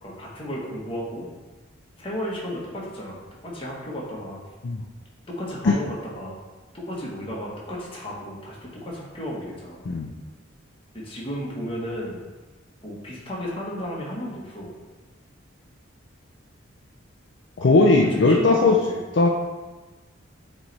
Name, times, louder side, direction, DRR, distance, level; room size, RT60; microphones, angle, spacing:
voice 1, 0.0-1.3 2.0-3.2 3.4-4.4 5.3-6.4 6.7-9.8 10.9-12.2 12.8-14.7 17.6-19.0, equal, 25° left, -4 dB, 1.2 m, -34 dB
voice 2, 17.6-18.8 19.1-19.3, left 3 dB, 60° left, 1 dB, 0.4 m, -18 dB
7.4 x 3.2 x 4.0 m, 1.2 s
head